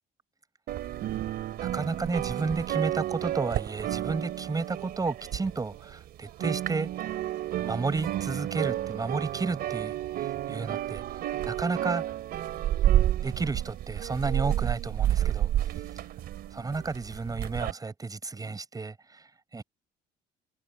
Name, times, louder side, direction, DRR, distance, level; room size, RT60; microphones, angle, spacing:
sound 1, 0.7-6.0 6.3-17.7, right 12 dB, 70° right, 3.1 m, -30 dB
voice 1, 1.6-6.9 7.6-11.0 11.5-12.0 13.2-15.5 16.5-19.6, right 3 dB, 20° right, 5.3 m, -32 dB
cardioid pair, 110°, 17 cm